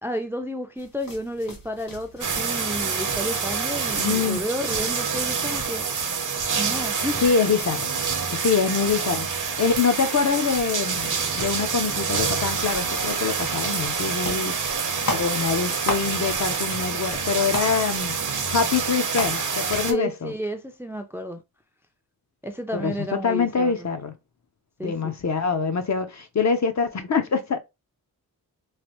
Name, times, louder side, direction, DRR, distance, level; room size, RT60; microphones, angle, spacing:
voice 1, 0.0-5.8 6.6-7.2 19.9-21.4 22.4-23.7 24.8-25.1, equal, 5° right, 0.4 m, -31 dB
sound 1, 0.8-19.9, left 2 dB, 65° left, 1.4 m, -39 dB
sound 2, 2.2-19.9, right 5 dB, 55° right, 0.7 m, -27 dB
voice 2, 4.0-4.4 7.2-7.9 8.3-14.6 15.1-20.3 22.7-24.1 24.8-27.6, left 5 dB, 50° left, 0.6 m, -25 dB
3.2 x 2.5 x 2.9 m
wide cardioid pair, 85°, 36 cm